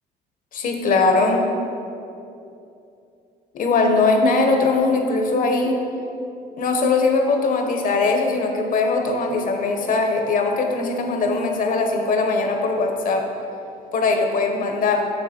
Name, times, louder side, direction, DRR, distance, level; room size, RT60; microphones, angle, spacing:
voice 1, 0.5-1.5 3.5-5.8 6.6-13.3 13.9-15.1, left 3 dB, 55° left, 3 dB, 1.0 m, -20 dB
7.0 x 6.5 x 4.4 m, 2.7 s
cardioid pair, 110°, 17 cm